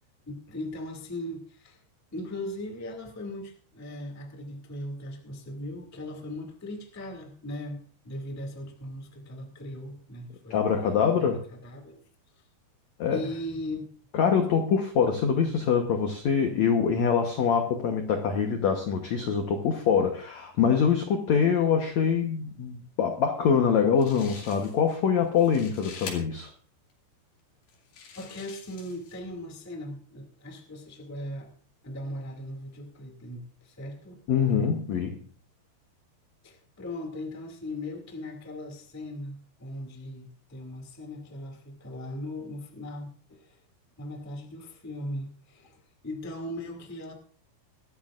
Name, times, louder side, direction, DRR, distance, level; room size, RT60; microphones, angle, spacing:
voice 1, 0.3-1.8 2.1-10.6 11.2-12.0 13.1-13.9 28.1-31.5 31.8-34.2 36.4-43.6 44.0-47.1, left 1 dB, 15° left, 2 dB, 0.6 m, -38 dB
voice 2, 10.5-11.4 13.0-13.2 14.1-26.5 34.3-35.2, left 6 dB, 85° left, 4 dB, 1.5 m, -24 dB
sound 1, 23.7-23.8 24.0-24.9 25.3-26.2 26.9-27.0 27.7-29.2, left 6 dB, 60° left, 4.1 m, -45 dB
24.0 x 13.0 x 2.5 m, 0.43 s
omnidirectional pair, 5.0 m